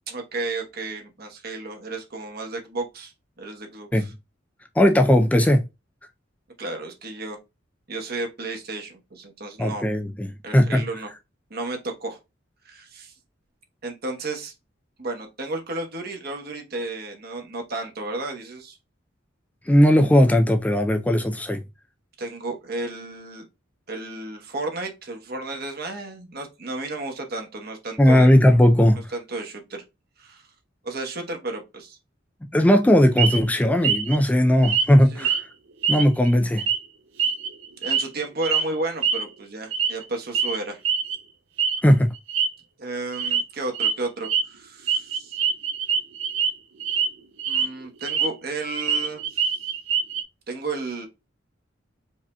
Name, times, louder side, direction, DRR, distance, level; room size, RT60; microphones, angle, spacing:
voice 1, 0.1-3.1 3.4-4.1 6.6-7.4 7.9-9.8 10.4-11.1 11.5-12.2 12.6-13.1 13.8-14.5 15.0-18.8 22.2-23.5 23.9-28.3 29.1-29.8 30.2-30.4 30.8-32.0 35.1-35.3 37.8-40.8 42.8-45.4 47.5-49.5 50.5-51.1, right 2 dB, 55° right, 1.1 m, -33 dB
voice 2, 4.8-5.6 9.6-10.8 19.7-21.6 28.0-29.1 32.5-35.4 35.9-36.6 41.8-42.1, equal, 10° left, 0.3 m, -18 dB
sound 1, 33.2-33.4 33.8-34.2 34.6-34.9 35.2-35.4 35.8-36.3 36.6-36.8 37.2-38.1 38.4-38.6 39.0-39.2 39.7-40.0 40.3-40.6 40.8-41.2 41.6-41.8 42.2-42.5 43.1-43.4 43.7-43.9 44.2-44.4 44.9-46.5 46.8-47.1 47.4-48.3 48.6-50.2, right 7 dB, 80° right, 0.5 m, -24 dB
4.8 x 2.7 x 2.2 m
head